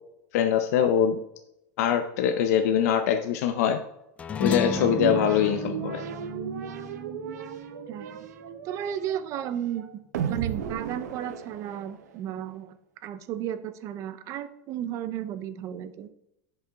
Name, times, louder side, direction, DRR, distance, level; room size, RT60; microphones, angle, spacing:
voice 1, 0.3-1.2 1.8-3.8 4.4-6.0, left 9 dB, 65° left, 7 dB, 0.6 m, -23 dB
sound 1, 4.2-8.9, left 6 dB, 15° left, 0.4 m, -34 dB
sound 2, 4.7-12.2, right 8 dB, 90° right, 0.9 m, -35 dB
voice 2, 7.9-8.3 8.6-10.0 10.3-12.8 13.0-16.1, right 10 dB, 35° right, 12 dB, 0.6 m, -34 dB
10.0 x 5.6 x 3.5 m, 0.83 s
supercardioid pair, 150°, 9 cm